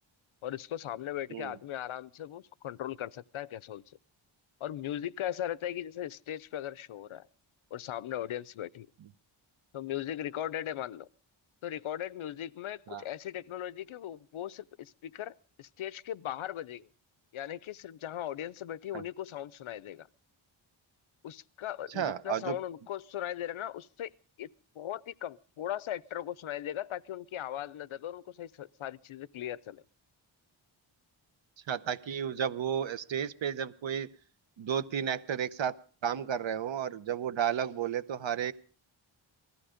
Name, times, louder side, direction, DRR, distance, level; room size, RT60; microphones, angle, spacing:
voice 1, 0.4-4.0 4.6-7.3 7.7-8.9 9.7-11.1 11.6-16.9 17.3-20.1 21.2-24.1 24.4-24.5 24.7-29.8, left 11 dB, 80° left, 0.7 m, -38 dB
voice 2, 21.9-22.6 31.7-34.1 34.6-35.7 36.0-38.5, right 8 dB, 65° right, 0.9 m, -32 dB
19.5 x 14.0 x 5.0 m
wide cardioid pair, 170°, 48 cm